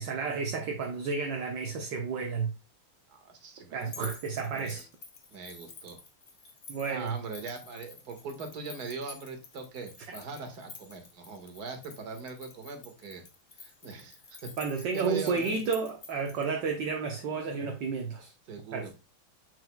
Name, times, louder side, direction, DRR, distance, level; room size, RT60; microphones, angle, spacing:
voice 1, 0.0-2.5 3.7-4.9 6.7-7.1 14.6-18.3 18.7-18.9, right 5 dB, 65° right, 1.5 m, -31 dB
voice 2, 3.1-4.1 4.5-4.8 5.3-6.0 6.9-13.2 13.6-14.5 14.8-15.6 18.5-18.9, right 4 dB, 50° right, 1.9 m, -41 dB
sound 1, 3.8-16.5, left 4 dB, 40° left, 1.0 m, -50 dB
6.9 x 6.2 x 2.2 m
omnidirectional pair, 2.3 m